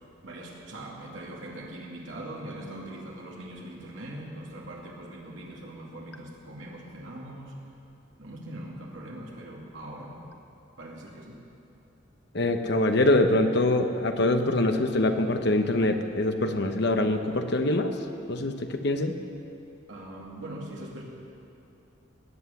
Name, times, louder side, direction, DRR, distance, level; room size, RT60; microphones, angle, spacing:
voice 1, 0.2-7.6 8.2-10.2 10.8-11.4 19.9-21.0, right 1 dB, 75° right, -2 dB, 2.5 m, -41 dB
voice 2, 12.3-17.9 18.3-19.1, left 1 dB, 60° left, 6 dB, 1.0 m, -24 dB
19.5 x 8.1 x 7.1 m, 2.8 s
head